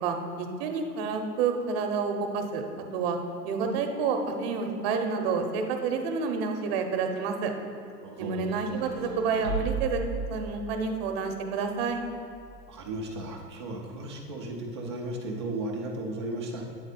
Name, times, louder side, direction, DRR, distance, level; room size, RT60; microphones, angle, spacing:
voice 1, 0.0-2.6 2.9-3.2 3.4-7.5 8.2-10.0 10.3-12.0, right 5 dB, 35° right, 5 dB, 0.8 m, -29 dB
voice 2, 8.0-8.5 12.7-16.6, right 2 dB, 20° right, 0 dB, 0.3 m, -35 dB
sound 1, 8.3-11.0 11.9-12.8, right 4 dB, 85° left, 1.8 m, -36 dB
8.5 x 3.9 x 5.1 m, 2.6 s
figure-of-eight pair, 100°, 49 cm